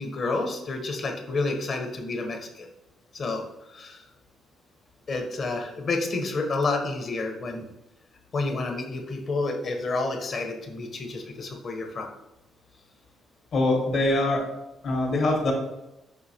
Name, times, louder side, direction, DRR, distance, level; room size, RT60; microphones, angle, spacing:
voice 1, 0.0-2.7 3.1-3.4 3.7-4.0 5.1-7.6 8.3-12.1, left 3 dB, 50° left, 4 dB, 0.7 m, -29 dB
voice 2, 13.5-14.4 14.8-15.5, left 2 dB, 65° left, 1 dB, 1.1 m, -23 dB
5.4 x 2.7 x 2.7 m, 0.93 s
cardioid pair, 90°, 0 cm